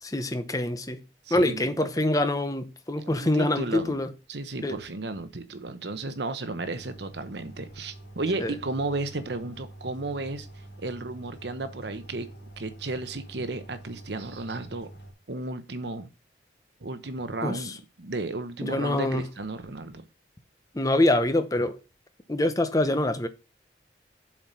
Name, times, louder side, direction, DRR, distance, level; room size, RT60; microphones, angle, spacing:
voice 1, 0.0-1.0 1.3-4.1 4.6-4.8 8.4-8.5 17.4-17.8 18.6-19.3 20.7-21.8 22.3-23.3, left 1 dB, 20° left, 0.8 m, -25 dB
voice 2, 1.3-1.7 3.0-4.0 4.3-10.5 10.8-12.3 12.6-14.9 15.3-16.1 16.8-17.7 18.0-20.0, right 2 dB, 65° right, 1.0 m, -33 dB
sound 1, 6.5-15.1, right 1 dB, 70° left, 2.0 m, -46 dB
7.4 x 4.8 x 5.5 m
head